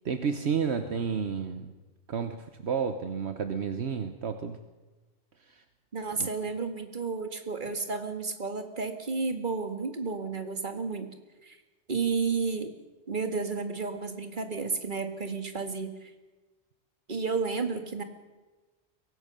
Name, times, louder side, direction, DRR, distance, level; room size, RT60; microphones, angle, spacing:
voice 1, 0.0-1.7 2.1-4.6 5.5-5.6 6.2-6.3, right 6 dB, 70° right, 8 dB, 1.3 m, -31 dB
voice 2, 5.9-11.1 11.4-11.6 11.9-12.7 13.1-16.1 17.1-18.0, right 4 dB, 45° right, 7 dB, 2.0 m, -32 dB
23.0 x 17.5 x 6.8 m, 1.2 s
omnidirectional pair, 1.2 m